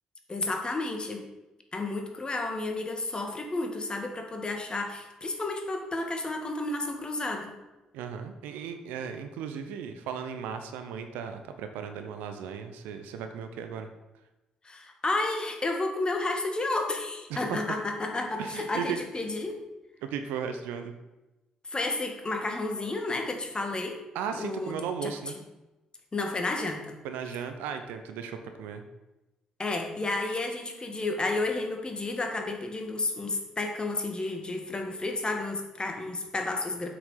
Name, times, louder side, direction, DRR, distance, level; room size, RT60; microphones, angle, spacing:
voice 1, 0.3-1.2 1.7-7.5 14.6-19.6 21.6-24.0 24.3-25.1 26.1-27.0 29.6-36.9, left 2 dB, 30° left, 3 dB, 2.0 m, -31 dB
voice 2, 7.9-13.9 17.3-17.6 18.4-19.0 20.0-20.9 24.1-25.4 27.0-28.8, right 7 dB, 70° right, 7 dB, 0.8 m, -36 dB
8.2 x 6.2 x 5.8 m, 1.0 s
hypercardioid pair, 45°, 3 cm